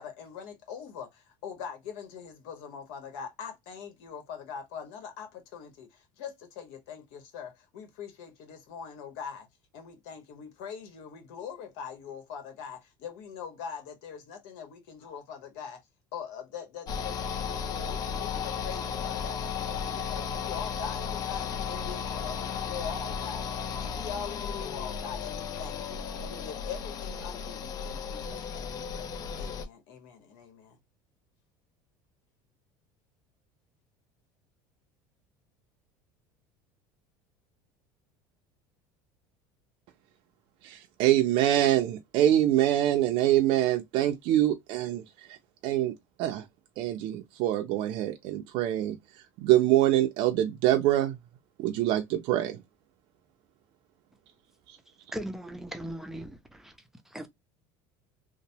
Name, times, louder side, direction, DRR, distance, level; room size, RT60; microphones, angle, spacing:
voice 1, 0.0-9.5 9.7-15.8 16.1-29.1 29.4-30.8, left 7 dB, 75° left, 1.2 m, -42 dB
sound 1, 16.9-29.7, left 7 dB, 40° left, 0.5 m, -34 dB
voice 2, 40.6-45.0 45.6-45.9 46.2-46.4 46.8-49.0 49.4-51.2 51.6-52.6, right 13 dB, 60° right, 0.5 m, -25 dB
voice 3, 55.1-56.8 57.1-57.3, right 1 dB, 5° right, 0.5 m, -38 dB
2.9 x 2.1 x 2.7 m
supercardioid pair, 125°, 10 cm